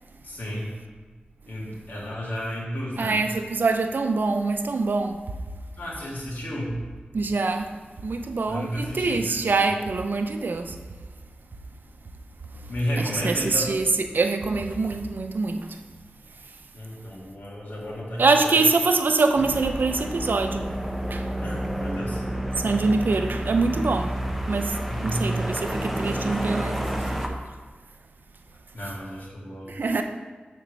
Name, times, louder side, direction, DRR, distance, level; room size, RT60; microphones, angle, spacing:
voice 1, 0.2-0.7 1.5-3.2 5.8-6.8 8.5-9.6 12.7-13.7 16.7-18.5 21.4-22.2 24.9-25.5 28.7-29.8, equal, 70° left, 2.2 m, -32 dB
voice 2, 3.0-5.2 7.1-7.7 8.0-10.8 13.0-15.8 18.2-20.6 21.1-21.2 22.6-24.1 24.5-24.8 25.0-27.4 29.7-30.0, right 3 dB, 70° right, 0.6 m, -24 dB
sound 1, 19.3-27.3, right 1 dB, ahead, 0.7 m, -30 dB
6.8 x 4.2 x 6.1 m
wide cardioid pair, 90°, 3 cm